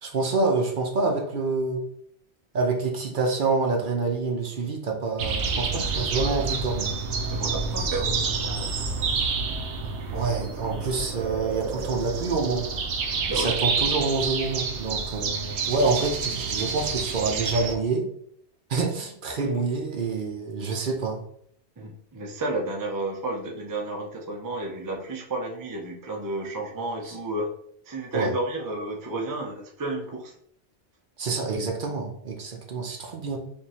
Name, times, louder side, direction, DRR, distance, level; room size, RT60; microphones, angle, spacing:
voice 1, 0.0-1.9 2.5-6.9 10.1-12.6 13.3-18.1 18.7-21.2 28.1-28.3 31.2-33.4, right 4 dB, 55° right, 2 dB, 0.8 m, -27 dB
sound 1, 5.2-17.7, right 4 dB, 90° right, 0.9 m, -28 dB
voice 2, 6.1-6.5 7.3-8.7 13.2-13.6 19.4-19.6 21.8-27.5 27.8-30.3, right 2 dB, 25° right, 0 dB, 0.4 m, -32 dB
5.0 x 2.6 x 2.8 m, 0.68 s
omnidirectional pair, 1.1 m